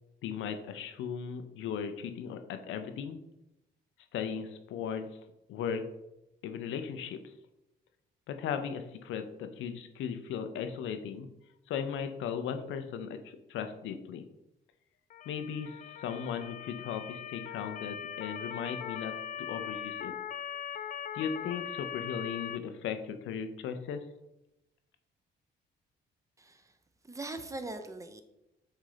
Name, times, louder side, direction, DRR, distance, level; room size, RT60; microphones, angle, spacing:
voice 1, 0.2-3.2 4.1-5.1 5.5-5.8 6.4-7.2 8.3-11.3 11.7-14.2 15.3-19.1 19.4-20.1 21.1-24.0, left 7 dB, 85° left, 8 dB, 0.7 m, -37 dB
Motor vehicle (road) / Siren, 15.1-22.6, left 9 dB, 45° left, 0.4 m, -40 dB
voice 2, 26.4-26.7 27.0-28.2, right 2 dB, 15° right, 8 dB, 0.7 m, -41 dB
7.4 x 2.8 x 4.9 m, 0.91 s
cardioid pair, 90°, 20 cm